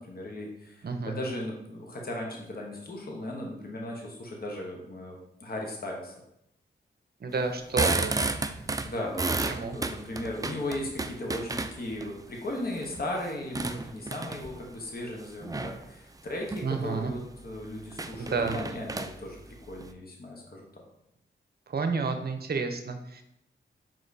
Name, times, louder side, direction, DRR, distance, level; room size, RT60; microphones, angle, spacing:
voice 1, 0.0-6.1 8.8-20.8, left 1 dB, 50° left, 0 dB, 1.0 m, -37 dB
voice 2, 0.8-1.1 7.2-8.1 9.5-9.8 16.6-17.1 18.2-18.6 21.7-23.2, right 4 dB, 50° right, 6 dB, 0.7 m, -30 dB
sound 1, 7.5-12.1 12.6-14.6 15.4-15.8 16.3-16.7 17.1-17.2 17.4-17.5 17.9-19.9, right 3 dB, 20° right, 0.3 m, -32 dB
4.9 x 3.7 x 2.7 m, 0.78 s
cardioid pair, 50°, 20 cm